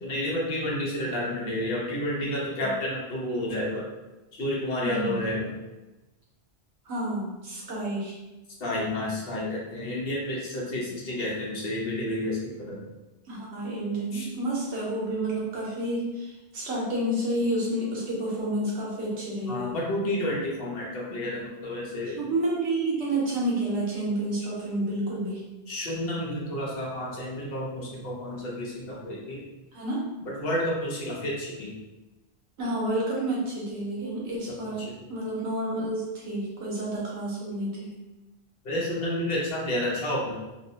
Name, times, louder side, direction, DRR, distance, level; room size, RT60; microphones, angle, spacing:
voice 1, 0.0-3.9 4.3-5.5 8.6-12.8 14.1-14.3 19.5-22.2 25.7-29.4 30.3-31.8 34.5-35.1 38.6-40.3, left 1 dB, 65° left, -4 dB, 0.9 m, -30 dB
voice 2, 4.8-5.2 6.8-8.1 13.3-19.7 22.2-25.4 29.7-30.1 32.6-37.9, right 1 dB, 80° right, -4 dB, 1.1 m, -30 dB
2.9 x 2.0 x 2.8 m, 1.1 s
omnidirectional pair, 1.1 m